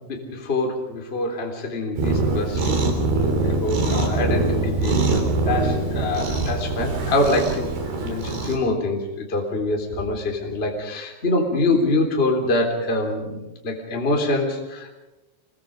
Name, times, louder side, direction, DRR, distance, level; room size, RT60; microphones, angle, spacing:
voice 1, 0.0-2.7 3.1-7.7 8.0-14.9, left 2 dB, 15° left, 1 dB, 2.9 m, -25 dB
Cat, 2.0-8.6, right 3 dB, 60° right, 5.3 m, -23 dB
26.5 x 22.5 x 5.2 m, 1.0 s
omnidirectional pair, 5.1 m